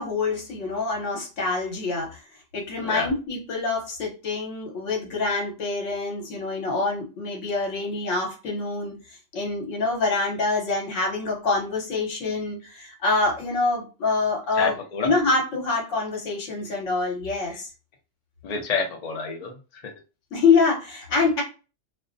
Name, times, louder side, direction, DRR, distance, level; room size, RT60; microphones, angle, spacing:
voice 1, 0.0-2.2 2.5-14.8 15.0-17.7 20.3-21.4, left 3 dB, 70° left, 0 dB, 1.2 m, -25 dB
voice 2, 14.5-15.1 18.4-19.5 19.8-19.9, left 5 dB, 55° left, 3 dB, 0.4 m, -28 dB
2.5 x 2.0 x 2.5 m, 0.32 s
omnidirectional pair, 1.3 m